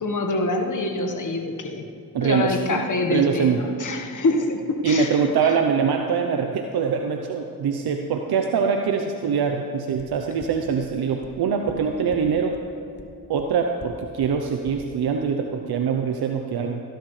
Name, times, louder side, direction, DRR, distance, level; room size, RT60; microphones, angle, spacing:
voice 1, 0.0-1.9 2.2-5.6, left 2 dB, 55° left, 3 dB, 1.5 m, -26 dB
voice 2, 2.1-2.8 3.1-3.7 4.8-12.5 13.3-16.8, right 6 dB, 80° right, 4 dB, 0.8 m, -23 dB
sound 1, 10.0-10.1 10.4-10.5 10.8-10.9 11.2-11.3 11.7-11.8 12.1-12.2 12.5-12.6 13.0-13.1 13.4-13.5 13.8-13.9 14.2-14.3 14.7-14.8, left 3 dB, 25° left, 1.2 m, -41 dB
16.5 x 11.5 x 3.3 m, 2.6 s
cardioid pair, 55°, 37 cm